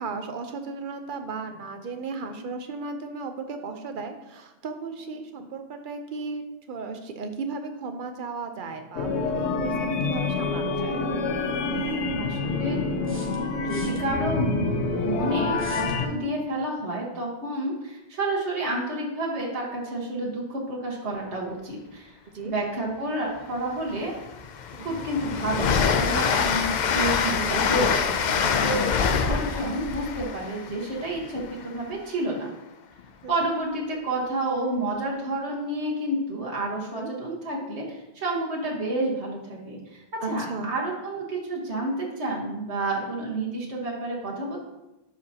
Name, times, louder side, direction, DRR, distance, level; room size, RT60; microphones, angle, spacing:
voice 1, 0.0-11.0 16.0-16.3 22.3-22.5 24.8-25.1 29.1-29.2 33.2-33.5 36.9-37.1 40.2-40.7, right 4 dB, 55° right, 6 dB, 0.8 m, -35 dB
sound 1, 8.9-16.1, left 3 dB, 90° left, 1.0 m, -27 dB
voice 2, 12.1-12.8 13.6-14.8 15.0-22.1 22.4-24.1 24.8-32.5 33.3-44.6, right 1 dB, 90° right, -3 dB, 1.7 m, -30 dB
sound 2, 13.0-14.0 15.5-16.0, equal, 15° right, 0.8 m, -44 dB
Train, 23.5-23.6 24.0-31.7, left 6 dB, 55° left, 0.5 m, -25 dB
11.0 x 4.8 x 2.8 m, 0.98 s
omnidirectional pair, 1.1 m